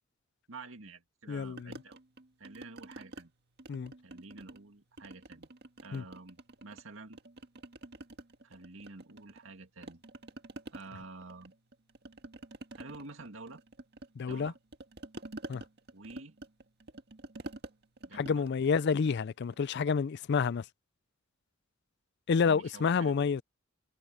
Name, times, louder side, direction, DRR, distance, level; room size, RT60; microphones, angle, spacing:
voice 1, 0.5-2.0 2.4-3.3 4.0-5.5 5.8-7.2 8.4-10.0 10.7-11.5 12.7-13.6 14.2-14.6 15.9-16.4 18.0-18.5 22.4-23.2, right 3 dB, 75° right, 2.2 m, -49 dB
voice 2, 1.3-1.7 3.7-3.9 5.9-6.0 14.2-14.5 15.5-15.6 18.2-20.6 22.3-23.4, left 5 dB, 55° left, 0.4 m, -29 dB
sound 1, 1.6-3.3 3.6-4.7 5.0-6.8 7.1-9.5 9.8-19.6, right 2 dB, 55° right, 1.7 m, -48 dB
head